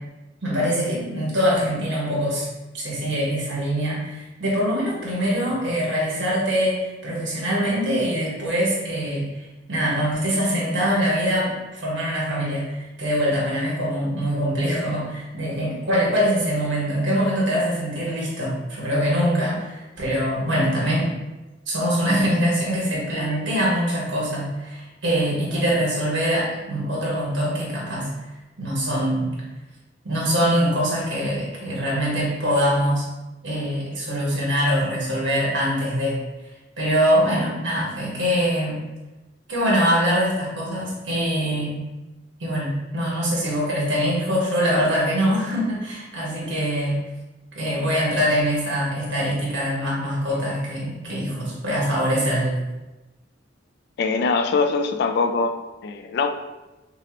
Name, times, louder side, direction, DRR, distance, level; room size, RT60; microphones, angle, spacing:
voice 1, 0.4-2.5 2.7-9.3 9.7-21.1 21.7-28.1 28.6-29.3 30.0-33.0 33.4-36.2 36.8-38.8 39.5-41.8 42.4-47.0 47.5-52.5, equal, 70° right, -5 dB, 1.5 m, -23 dB
voice 2, 54.0-55.6 55.8-56.3, left 4 dB, 60° left, 7 dB, 0.3 m, -22 dB
5.7 x 2.0 x 3.0 m, 1.1 s
head